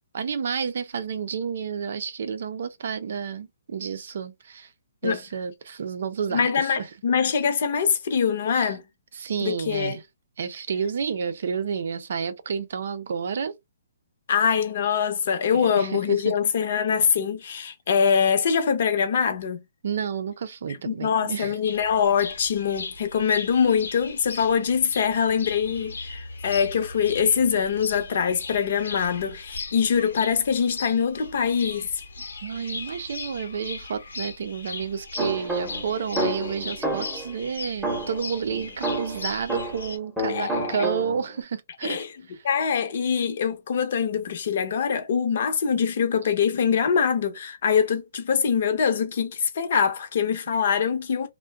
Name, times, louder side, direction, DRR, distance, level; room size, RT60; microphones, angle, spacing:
voice 1, 0.1-4.7 5.0-6.9 8.6-8.7 9.1-10.0 10.4-13.6 15.5-16.3 19.8-21.5 32.4-42.5, right 6 dB, 65° right, 0.5 m, -30 dB
voice 2, 6.3-8.8 9.4-10.0 14.3-19.6 20.9-31.9 40.3-40.9 41.8-42.1 42.4-51.3, left 7 dB, 55° left, 0.8 m, -23 dB
sound 1, 21.6-40.0, left 3 dB, 90° left, 0.8 m, -38 dB
sound 2, 35.2-37.3 37.8-39.9 40.2-41.4, right 1 dB, 5° right, 0.9 m, -30 dB
2.5 x 2.1 x 2.3 m
hypercardioid pair, 150°, 0 cm